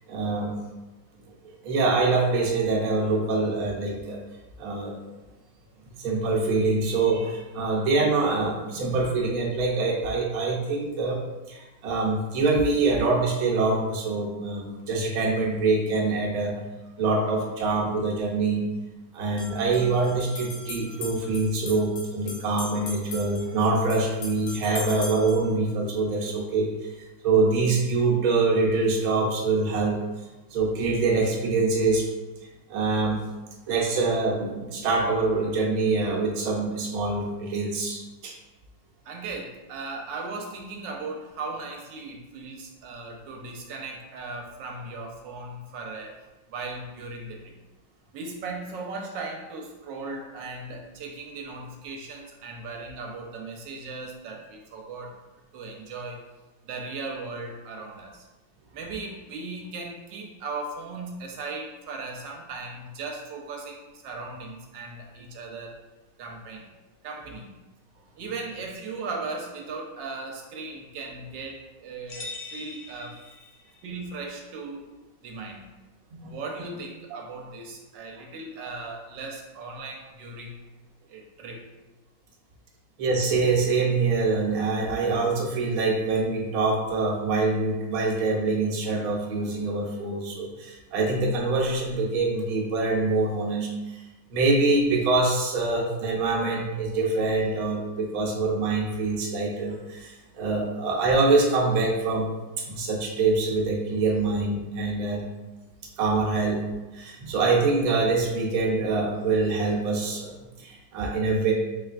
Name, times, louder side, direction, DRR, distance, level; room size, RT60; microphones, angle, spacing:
voice 1, 0.1-0.5 1.4-4.2 4.6-4.9 6.0-11.2 11.5-16.6 17.0-18.6 19.1-26.9 27.2-30.0 30.5-32.1 32.7-33.2 33.7-38.3 76.1-76.4 83.0-94.0 94.3-102.3 102.7-105.2 106.0-106.6 106.9-111.5, right 3 dB, 60° right, -2 dB, 1.1 m, -25 dB
sound 1, 19.2-25.5, left 2 dB, 65° left, 1.2 m, -40 dB
voice 2, 39.0-46.2 46.5-47.5 48.1-55.2 55.5-56.2 56.7-58.2 58.7-65.8 66.2-66.7 67.0-67.5 68.2-73.2 73.8-74.8 75.2-75.6 76.2-80.6 81.1-81.7, right 3 dB, 85° right, 1 dB, 1.3 m, -37 dB
sound 2, 72.1-73.9, left 3 dB, 85° left, 0.5 m, -41 dB
4.5 x 3.2 x 2.4 m, 1.1 s
omnidirectional pair, 2.0 m